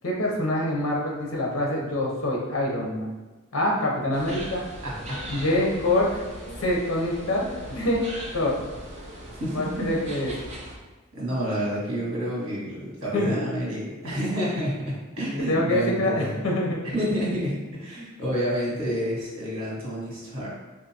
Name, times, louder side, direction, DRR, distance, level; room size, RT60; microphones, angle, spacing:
voice 1, 0.0-3.1 3.5-4.6 5.3-6.2 6.6-7.4 7.7-8.0 8.3-8.6 9.5-10.3 13.1-13.4 15.4-17.2 18.0-18.1, left 1 dB, 65° left, -2 dB, 0.7 m, -25 dB
sound 1, 4.1-10.7, right 1 dB, 35° right, 0.6 m, -39 dB
voice 2, 4.8-5.4 9.4-9.9 11.1-16.4 16.8-20.5, equal, 75° right, -5 dB, 1.4 m, -29 dB
3.6 x 2.6 x 2.8 m, 1.2 s
head